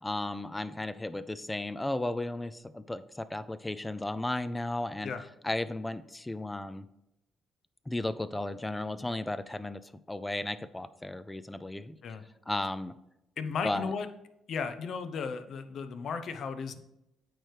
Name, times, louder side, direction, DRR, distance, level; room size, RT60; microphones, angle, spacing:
voice 1, 0.0-5.1 5.4-6.9 7.9-12.0 12.5-12.9 13.6-13.9, left 1 dB, 10° left, 14 dB, 0.3 m, -34 dB
voice 2, 13.4-14.1 14.5-16.8, left 5 dB, 65° left, 10 dB, 0.6 m, -35 dB
8.9 x 3.1 x 4.9 m, 0.87 s
cardioid pair, 90°, 0 cm